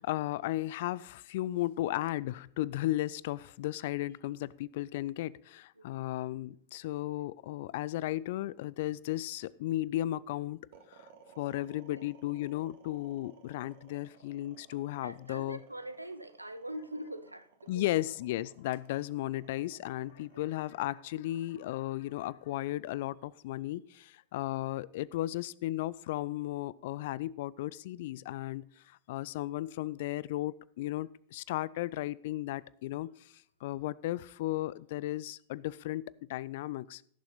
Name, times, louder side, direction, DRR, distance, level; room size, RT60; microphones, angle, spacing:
voice 1, 0.0-10.6 10.9-11.1 11.4-15.6 17.7-33.3 33.6-37.0, left 15 dB, 50° left, 0.3 m, -35 dB
sound 1, 10.7-23.0, right 7 dB, 55° right, 2.0 m, -59 dB
voice 2, 14.9-17.9 20.3-20.5, right 1 dB, 85° right, 0.6 m, -43 dB
16.5 x 7.1 x 4.0 m
figure-of-eight pair, 90°, 0 cm